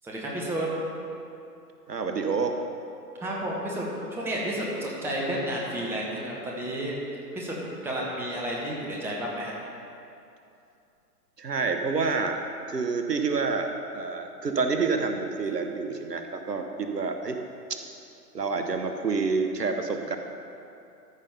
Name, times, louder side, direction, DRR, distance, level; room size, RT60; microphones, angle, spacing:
voice 1, 0.0-0.7 3.2-3.8 4.1-6.9 7.3-7.5 7.8-9.5, right 1 dB, 5° right, -3 dB, 1.0 m, -31 dB
voice 2, 1.9-2.6 11.4-12.4 12.7-17.4 18.3-20.2, right 4 dB, 80° right, 5 dB, 1.1 m, -28 dB
13.5 x 5.1 x 5.5 m, 2.7 s
figure-of-eight pair, 120°, 48 cm